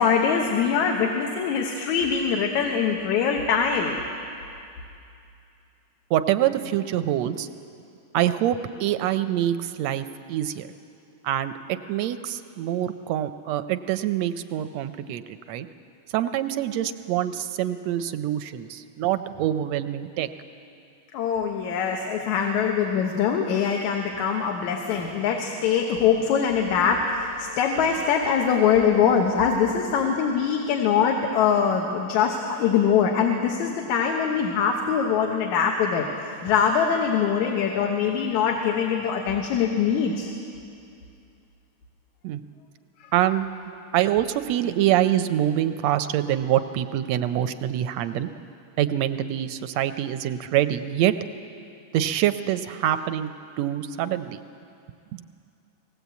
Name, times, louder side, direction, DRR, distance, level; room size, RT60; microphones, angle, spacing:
voice 1, 0.0-4.0 21.1-40.3, left 7 dB, 75° left, 1 dB, 2.5 m, -23 dB
voice 2, 6.1-7.5 8.1-10.7 11.2-15.7 16.1-20.3 42.2-42.4 43.1-43.5 43.9-48.3 48.8-51.1 51.9-53.3 53.6-54.4, right 12 dB, 75° right, 10 dB, 1.6 m, -25 dB
20.0 x 18.5 x 8.2 m, 2.5 s
omnidirectional pair, 3.4 m